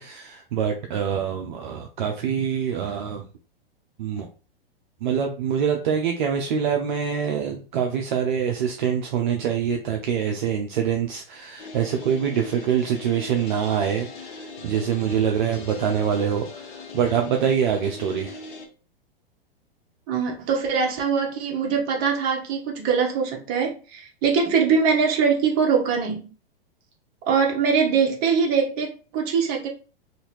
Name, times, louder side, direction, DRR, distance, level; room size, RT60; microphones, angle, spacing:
voice 1, 0.0-3.2 4.0-4.3 5.0-18.4, right 8 dB, 55° right, 0.5 m, -25 dB
sound 1, 11.6-18.7, left 4 dB, 50° left, 0.8 m, -40 dB
voice 2, 20.1-26.3 27.3-29.7, right 6 dB, 30° right, 0.9 m, -22 dB
2.7 x 2.5 x 3.0 m
figure-of-eight pair, 100°, 30 cm